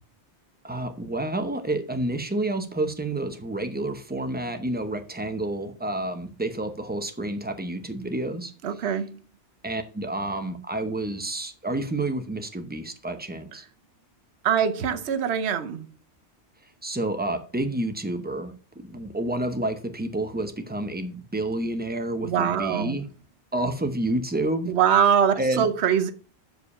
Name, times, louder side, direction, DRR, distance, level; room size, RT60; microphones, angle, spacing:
voice 1, 0.6-8.5 9.6-13.6 16.8-23.0 23.5-24.7 25.4-25.7, right 1 dB, 10° right, 0.7 m, -29 dB
voice 2, 8.6-9.2 14.4-15.9 22.2-23.0 24.7-26.1, right 8 dB, 70° right, 1.0 m, -23 dB
6.7 x 5.0 x 5.4 m
omnidirectional pair, 1.2 m